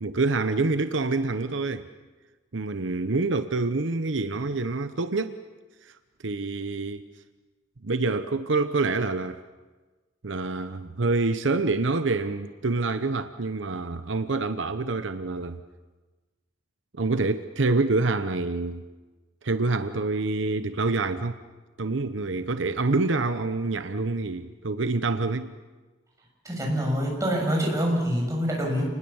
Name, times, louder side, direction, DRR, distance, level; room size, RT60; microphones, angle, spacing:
voice 1, 0.0-1.9 2.5-5.4 5.8-5.9 6.2-7.1 7.8-9.4 10.2-15.6 16.9-18.8 19.4-21.4 21.8-25.5, right 3 dB, 75° right, 10 dB, 0.9 m, -26 dB
voice 2, 26.4-28.8, equal, 15° right, -1 dB, 6.8 m, -25 dB
28.5 x 20.5 x 7.2 m, 1.3 s
head